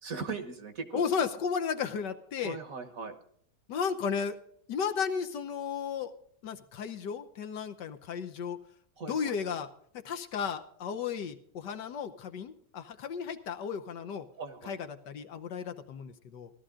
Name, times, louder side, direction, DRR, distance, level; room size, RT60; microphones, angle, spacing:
voice 1, 0.0-1.0 2.4-3.2 9.0-9.4 14.3-14.8, right 4 dB, 50° right, 8 dB, 1.6 m, -39 dB
voice 2, 0.9-2.6 3.7-4.4 4.7-6.1 6.4-8.6 9.1-9.7 9.9-14.3 14.7-16.5, left 6 dB, 70° left, 7 dB, 1.5 m, -34 dB
16.5 x 12.5 x 3.7 m, 0.63 s
omnidirectional pair, 2.1 m